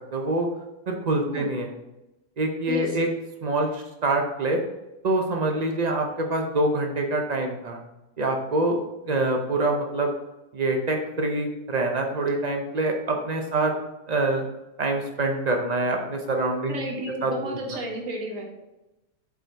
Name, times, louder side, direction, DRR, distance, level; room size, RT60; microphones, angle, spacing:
voice 1, 0.1-0.5 0.9-1.7 2.4-3.1 3.4-4.6 5.0-7.8 8.2-8.8 9.0-10.1 10.5-13.7 14.1-14.4 14.8-16.8 17.2-17.6, right 2 dB, 75° right, 2 dB, 0.3 m, -25 dB
voice 2, 2.7-3.0 16.7-18.4, equal, 50° right, 0 dB, 1.8 m, -32 dB
7.7 x 5.0 x 4.0 m, 0.96 s
omnidirectional pair, 1.8 m